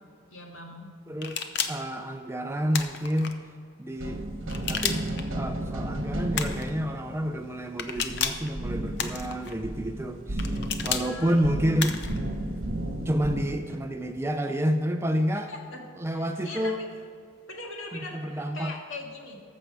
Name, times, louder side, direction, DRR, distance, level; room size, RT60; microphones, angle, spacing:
voice 1, 0.3-0.9 10.9-11.5 15.5-15.8 16.1-16.7 17.5-19.4, left 2 dB, 70° left, 0 dB, 1.8 m, -40 dB
voice 2, 1.1-1.4 1.7-3.4 3.8-4.2 4.7-12.0 13.1-15.5 16.0-16.8 17.9-18.7, equal, 10° right, 6 dB, 0.4 m, -29 dB
sound 1, 1.2-1.9 2.7-3.3 4.5-5.2 6.3-6.7 7.8-8.5 9.0-9.5 10.4-11.1 11.8-12.2, left 7 dB, 55° left, 0.7 m, -31 dB
sound 2, 4.0-13.5, right 1 dB, 70° right, 1.3 m, -33 dB
14.0 x 6.8 x 4.8 m, 2.4 s
head